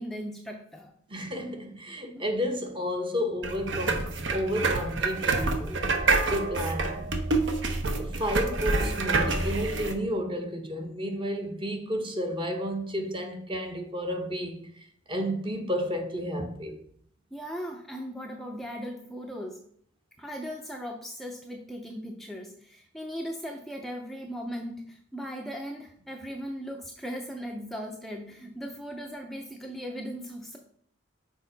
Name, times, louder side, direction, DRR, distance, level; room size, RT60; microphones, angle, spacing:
voice 1, 0.0-0.9 2.2-2.3 17.3-19.6 20.2-30.6, equal, ahead, 0.4 m, -38 dB
voice 2, 1.1-5.9 6.3-7.1 8.0-14.7 15.1-16.8, equal, 25° right, 0.8 m, -31 dB
sound 1, 3.4-9.9, right 3 dB, 65° right, 0.8 m, -27 dB
6.4 x 4.5 x 3.9 m
head